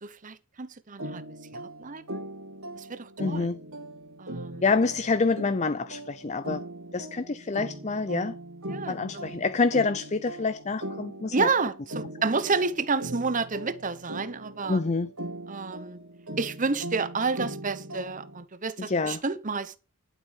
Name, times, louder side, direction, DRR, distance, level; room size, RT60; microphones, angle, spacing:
voice 1, 0.0-1.2 1.5-2.2 2.8-3.5 4.2-4.6 8.7-9.3 11.3-14.8 15.5-16.0 16.4-19.8, right 4 dB, 40° right, 1.0 m, -30 dB
sound 1, 1.0-18.4, right 1 dB, 85° right, 3.8 m, -40 dB
voice 2, 3.2-3.6 4.6-6.7 6.9-8.3 8.9-11.5 14.7-15.1 18.9-19.2, left 4 dB, 35° left, 0.5 m, -27 dB
11.5 x 8.0 x 5.0 m
head